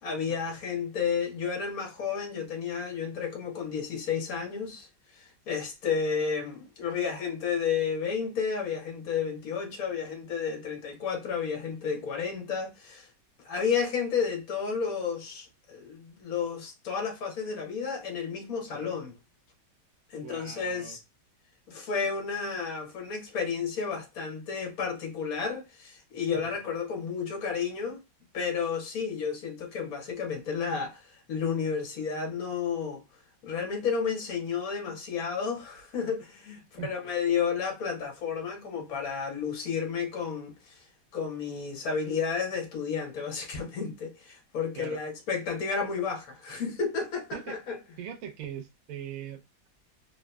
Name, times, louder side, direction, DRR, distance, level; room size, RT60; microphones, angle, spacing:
voice 1, 0.0-4.9 5.1-13.1 13.4-19.1 20.1-21.0 21.7-28.0 28.3-33.0 33.4-40.8 41.1-47.8, left 6 dB, 55° left, 1.4 m, -32 dB
voice 2, 20.2-21.0 26.3-26.6 36.8-36.9 44.8-45.0 47.3-47.6 48.0-49.7, right 9 dB, 60° right, 1.0 m, -41 dB
3.6 x 2.8 x 2.2 m
omnidirectional pair, 1.9 m